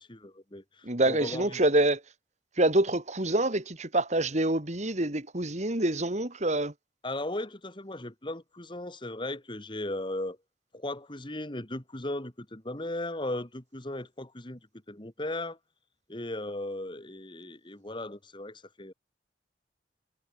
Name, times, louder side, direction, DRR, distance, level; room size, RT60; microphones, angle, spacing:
voice 1, 0.0-1.6 7.0-10.4 10.7-14.6 14.9-15.6 16.1-18.9, left 1 dB, 30° left, 2.5 m, -37 dB
voice 2, 0.8-2.0 2.6-6.7, right 1 dB, 40° right, 2.8 m, -26 dB
head